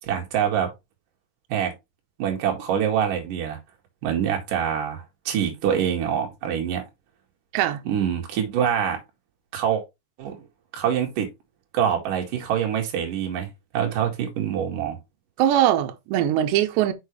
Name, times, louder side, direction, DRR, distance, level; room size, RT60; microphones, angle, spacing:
voice 1, 0.0-0.7 1.5-1.7 2.2-3.6 4.0-6.8 7.8-9.0 9.5-9.8 10.2-10.5 10.7-11.3 11.7-15.0, right 9 dB, 55° right, 2.8 m, -25 dB
voice 2, 15.4-16.9, right 11 dB, 75° right, 2.7 m, -21 dB
6.6 x 6.1 x 3.1 m
omnidirectional pair, 5.8 m